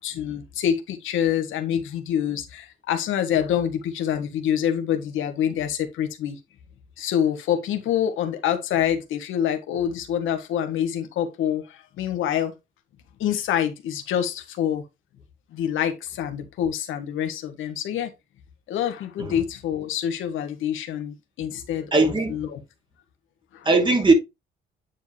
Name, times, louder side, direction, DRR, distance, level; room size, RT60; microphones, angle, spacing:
voice 1, 0.0-6.4 7.0-12.5 13.2-14.8 15.5-18.1 18.7-22.6 23.5-23.7, left 9 dB, 85° left, 1.5 m, -26 dB
voice 2, 21.9-22.4 23.7-24.1, right 3 dB, 25° right, 2.5 m, -19 dB
9.2 x 4.6 x 3.3 m
cardioid pair, 90°, 20 cm